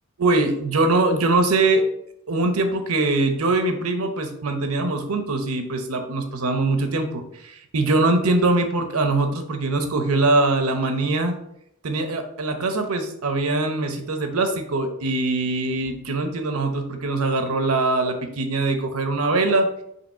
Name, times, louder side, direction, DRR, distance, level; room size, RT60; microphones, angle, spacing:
voice 1, 0.2-1.9 2.3-11.4 11.8-19.7, right 2 dB, 90° right, 6 dB, 0.9 m, -22 dB
5.7 x 3.1 x 5.6 m, 0.76 s
head